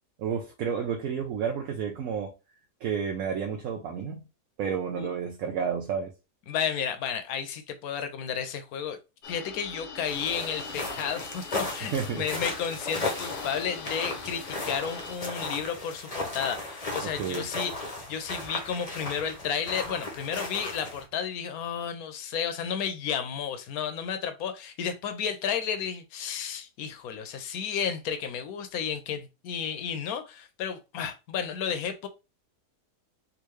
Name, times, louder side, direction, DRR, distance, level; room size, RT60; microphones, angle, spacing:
voice 1, 0.2-2.3 2.8-4.2 4.6-6.1 11.8-12.3 17.0-17.5, right 7 dB, 70° right, 1.0 m, -31 dB
voice 2, 6.5-9.0 9.3-17.8 18.1-32.1, left 7 dB, 75° left, 1.1 m, -32 dB
sound 1, 9.2-15.2, left 5 dB, 90° left, 0.4 m, -42 dB
sound 2, 10.0-21.0, left 2 dB, 35° left, 0.7 m, -36 dB
3.6 x 2.6 x 3.1 m
omnidirectional pair, 1.7 m